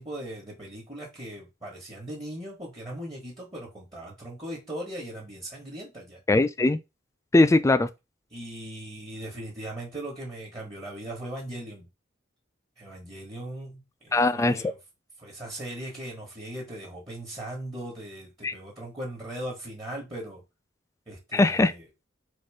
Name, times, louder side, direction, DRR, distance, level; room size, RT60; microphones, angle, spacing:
voice 1, 0.0-6.2 8.3-11.9 12.8-14.8 15.2-20.4 21.1-21.8, right 1 dB, 25° right, 1.4 m, -39 dB
voice 2, 6.3-6.8 7.3-7.9 14.1-14.7 18.4-18.5 21.3-21.7, left 2 dB, 15° left, 0.3 m, -20 dB
4.2 x 2.6 x 4.8 m
head